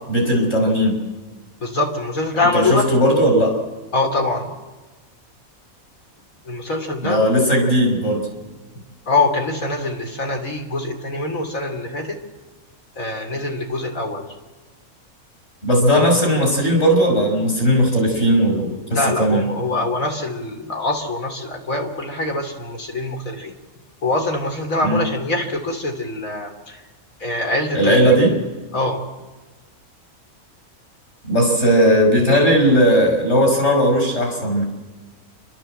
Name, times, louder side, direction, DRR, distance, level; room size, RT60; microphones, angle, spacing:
voice 1, 0.1-1.0 2.5-3.6 7.0-8.3 15.6-19.4 24.8-25.0 27.7-28.4 31.2-34.6, equal, 50° left, 1 dB, 5.9 m, -17 dB
voice 2, 1.6-2.9 3.9-4.5 6.5-7.2 9.1-12.2 13.0-14.3 18.9-23.5 24.0-26.8 27.2-28.3 28.7-29.0, left 2 dB, 70° left, 2 dB, 3.4 m, -24 dB
29.5 x 12.5 x 7.8 m, 1.3 s
omnidirectional pair, 1.5 m